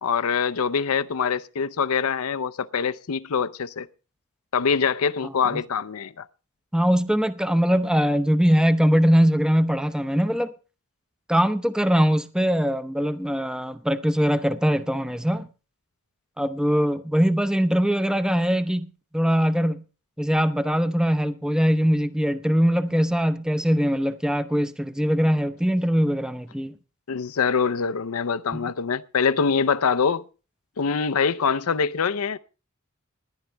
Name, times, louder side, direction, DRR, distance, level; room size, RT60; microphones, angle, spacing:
voice 1, 0.0-3.9 4.5-6.3 27.1-30.2 30.8-32.4, left 6 dB, 75° left, 0.6 m, -24 dB
voice 2, 6.7-10.5 11.3-15.5 16.4-18.9 19.1-19.8 20.2-26.7 28.5-28.6, equal, 5° right, 0.6 m, -22 dB
20.0 x 10.5 x 3.4 m
head